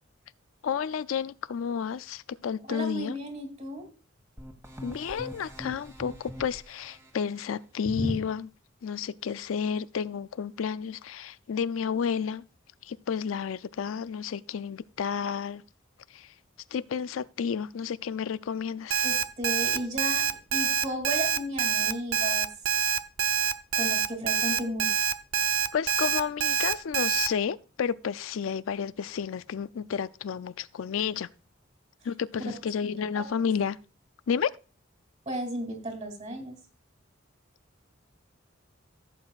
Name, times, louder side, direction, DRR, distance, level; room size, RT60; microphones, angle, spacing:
voice 1, 0.6-3.2 4.8-8.5 8.8-12.4 12.8-15.6 16.1-16.3 16.7-19.1 25.7-31.3 32.0-33.8 34.3-34.5, left 7 dB, 80° left, 0.4 m, -31 dB
voice 2, 2.7-3.9 7.9-8.2 19.0-22.5 23.7-25.0 33.0-33.5 35.3-36.5, equal, 35° right, 2.7 m, -34 dB
sound 1, 4.4-7.1, equal, 15° right, 1.4 m, -43 dB
Alarm, 18.9-27.3, right 7 dB, 75° right, 0.6 m, -26 dB
15.5 x 7.8 x 2.4 m
head